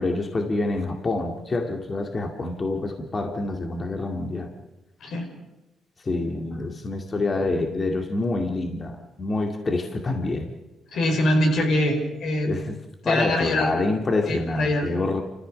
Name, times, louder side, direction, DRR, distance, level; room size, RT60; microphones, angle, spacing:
voice 1, 0.0-4.5 6.0-10.5 12.4-12.7 13.0-15.2, left 2 dB, 35° left, 3 dB, 2.2 m, -27 dB
voice 2, 10.9-12.6 13.0-13.7 14.3-14.9, left 1 dB, 70° left, 2 dB, 5.5 m, -23 dB
28.5 x 15.0 x 6.6 m, 1.0 s
cardioid pair, 90°, 0 cm